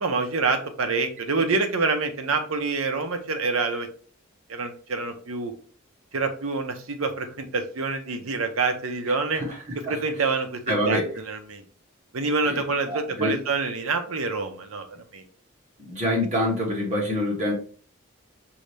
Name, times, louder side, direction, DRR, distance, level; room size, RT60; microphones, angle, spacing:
voice 1, 0.0-3.9 4.5-5.5 6.1-9.4 9.9-11.6 12.1-14.8 15.1-15.2, right 4 dB, 85° right, 7 dB, 0.7 m, -26 dB
voice 2, 10.7-11.1 12.4-12.6 12.9-13.3 15.8-17.5, left 1 dB, 35° right, -4 dB, 1.7 m, -26 dB
5.3 x 2.8 x 3.3 m, 0.43 s
head